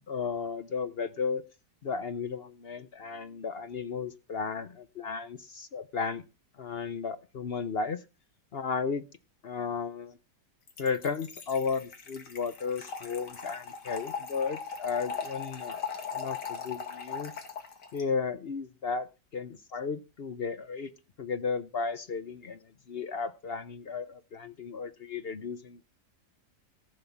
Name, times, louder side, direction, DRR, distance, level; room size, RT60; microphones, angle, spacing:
voice 1, 0.1-1.4 1.8-6.2 6.6-8.0 8.5-9.0 9.4-10.2 10.8-15.8 16.1-17.3 17.9-19.1 19.3-20.9 21.2-25.8, left 5 dB, 50° left, 13 dB, 0.7 m, -34 dB
Trickle dribble / Fill (with liquid), 10.7-18.0, left 6 dB, 85° left, 2.5 m, -39 dB
14.5 x 5.6 x 7.2 m, 0.31 s
omnidirectional pair, 1.7 m